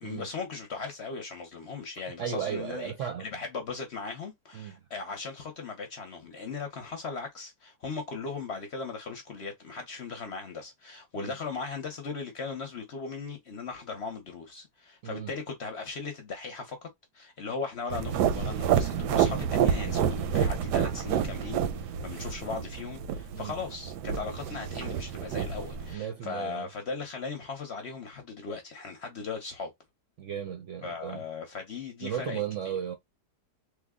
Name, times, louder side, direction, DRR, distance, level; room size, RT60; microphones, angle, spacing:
voice 1, 0.0-2.9 3.2-16.9 17.1-29.7 30.8-32.4, left 4 dB, 55° left, 0.8 m, -38 dB
voice 2, 2.2-3.3 4.5-4.8 11.1-11.4 15.0-15.3 23.3-23.5 25.9-26.7 30.2-31.2 32.0-33.0, right 9 dB, 65° right, 0.7 m, -35 dB
sound 1, 17.9-25.9, right 8 dB, 85° right, 1.2 m, -29 dB
3.3 x 2.1 x 3.5 m
omnidirectional pair, 1.7 m